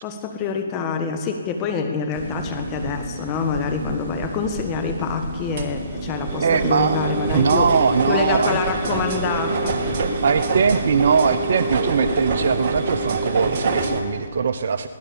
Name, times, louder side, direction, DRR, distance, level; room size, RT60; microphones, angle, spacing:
voice 1, 0.0-7.7 8.1-9.8 11.3-11.4, left 5 dB, 25° left, 5 dB, 1.7 m, -26 dB
sound 1, 2.1-14.0, right 3 dB, 40° right, 2.4 m, -26 dB
voice 2, 6.4-7.0 7.3-8.6 10.2-14.9, right 6 dB, 55° right, 10 dB, 0.8 m, -20 dB
22.5 x 17.5 x 7.1 m, 2.3 s
hypercardioid pair, 145°, 0 cm